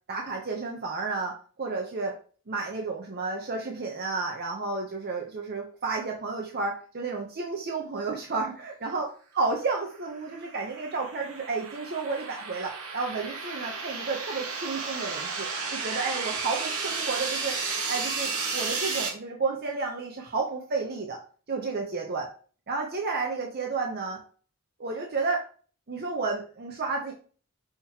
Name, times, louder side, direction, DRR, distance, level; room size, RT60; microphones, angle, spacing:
voice 1, 0.1-2.1 2.5-9.1 9.4-17.6 17.9-21.2 21.5-22.3 22.7-24.2 24.8-25.4 25.9-27.1, right 4 dB, 45° right, 0 dB, 0.6 m, -31 dB
sound 1, 10.1-19.1, right 4 dB, 75° right, 1.0 m, -33 dB
5.7 x 3.0 x 2.8 m, 0.40 s
head